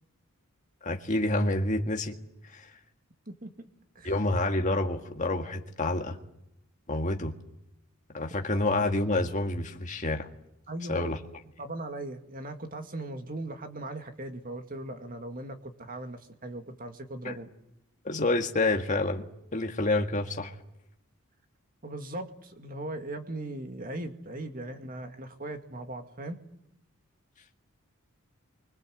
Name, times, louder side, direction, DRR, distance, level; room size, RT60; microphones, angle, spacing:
voice 1, 0.8-2.2 2.5-2.7 4.0-6.2 6.9-7.3 8.1-10.2 10.9-11.2 17.2-17.3 18.0-20.5, left 2 dB, 35° left, 3 dB, 1.8 m, -28 dB
voice 2, 3.3-3.7 4.0-4.1 10.7-11.2 11.6-17.5 21.8-26.4, right 2 dB, 40° right, 6 dB, 2.2 m, -39 dB
29.0 x 25.0 x 7.9 m, 0.82 s
head